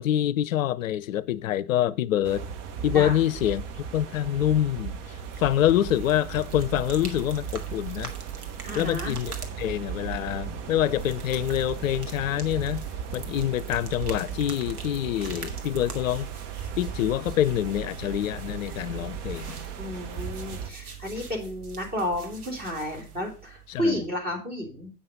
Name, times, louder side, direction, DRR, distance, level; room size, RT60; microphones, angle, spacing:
voice 1, 0.0-2.5 2.8-8.1 8.8-12.8 13.1-16.3 16.8-19.5 23.7-24.0, left 12 dB, 60° left, 0.5 m, -26 dB
sound 1, 2.2-20.7, right 7 dB, 50° right, 1.2 m, -38 dB
sound 2, 5.2-24.1, right 8 dB, 75° right, 1.7 m, -41 dB
voice 2, 8.6-9.1 19.8-24.9, left 1 dB, 20° right, 3.0 m, -31 dB
8.6 x 5.6 x 5.2 m
figure-of-eight pair, 95°, 45 cm